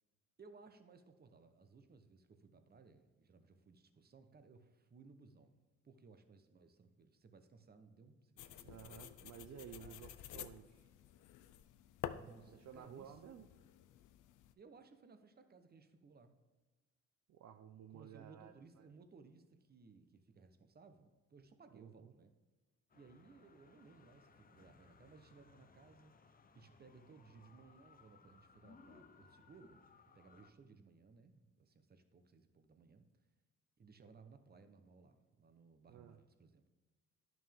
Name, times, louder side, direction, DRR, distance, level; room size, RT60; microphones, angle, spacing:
voice 1, 0.4-5.6 5.8-8.9 9.2-9.3 9.8-10.1 12.1-13.4 14.6-16.4 17.9-22.3 22.9-26.1 26.5-29.8 30.1-33.1 33.8-36.6, right 4 dB, 30° right, 8 dB, 1.0 m, -61 dB
sound 1, 8.4-14.5, left 11 dB, 80° left, 0.6 m, -51 dB
voice 2, 8.6-10.9 12.5-13.5 17.3-18.9 21.7-22.1 35.9-36.2, right 9 dB, 60° right, 7 dB, 0.6 m, -54 dB
sound 2, 22.9-30.5, left 5 dB, 30° left, 0.7 m, -65 dB
11.0 x 6.1 x 3.6 m, 1.3 s
cardioid pair, 90°, 30 cm